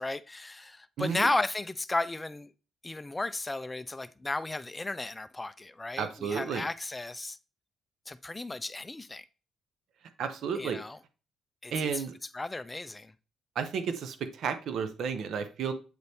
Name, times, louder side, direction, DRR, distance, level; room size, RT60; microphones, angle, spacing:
voice 1, 0.0-2.5 2.8-7.4 8.1-9.2 10.6-11.0 11.6-12.0 12.3-13.1, left 2 dB, 20° left, 0.4 m, -34 dB
voice 2, 1.0-1.3 6.0-6.6 10.2-10.8 11.7-12.1 13.6-15.7, right 6 dB, 70° right, 0.9 m, -32 dB
7.9 x 4.1 x 3.5 m
cardioid pair, 90°, 0 cm